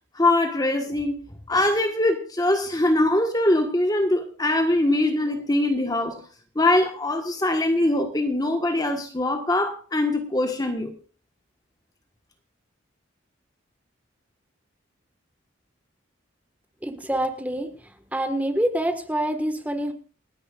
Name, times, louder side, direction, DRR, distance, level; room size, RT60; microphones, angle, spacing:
voice 1, 0.1-1.2 1.5-6.2 6.5-10.9, left 1 dB, 20° left, 1.4 m, -22 dB
voice 2, 16.8-17.7 18.1-19.9, right 1 dB, 10° right, 1.6 m, -26 dB
28.5 x 9.9 x 2.5 m
head